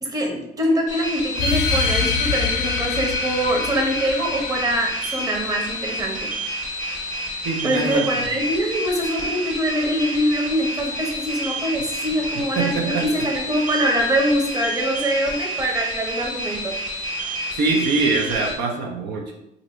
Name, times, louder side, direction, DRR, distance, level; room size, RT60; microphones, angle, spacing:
voice 1, 0.0-6.3 7.6-16.7, equal, 20° right, 0 dB, 0.8 m, -24 dB
sound 1, 0.9-18.5, right 1 dB, 50° right, 1.1 m, -29 dB
sound 2, 1.4-6.4, left 5 dB, 90° left, 0.5 m, -26 dB
voice 2, 7.4-8.0 12.6-13.1 17.6-19.3, right 3 dB, 80° right, 1 dB, 0.7 m, -23 dB
2.7 x 2.6 x 4.2 m, 0.83 s
cardioid pair, 110°, 17 cm